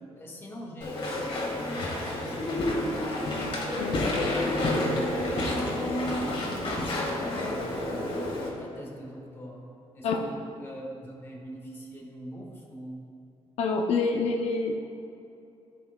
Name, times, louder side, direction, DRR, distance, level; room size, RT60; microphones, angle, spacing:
voice 1, 0.1-3.1 5.2-7.8 8.6-13.1, equal, 25° left, -2 dB, 1.6 m, -43 dB
Walk footsteps / Chatter / Squeak, 0.8-8.5, left 1 dB, 55° left, 1.8 m, -29 dB
voice 2, 13.6-14.8, left 4 dB, 85° left, 2 dB, 0.6 m, -27 dB
14.0 x 5.9 x 2.3 m, 2.7 s
cardioid pair, 140°, 11 cm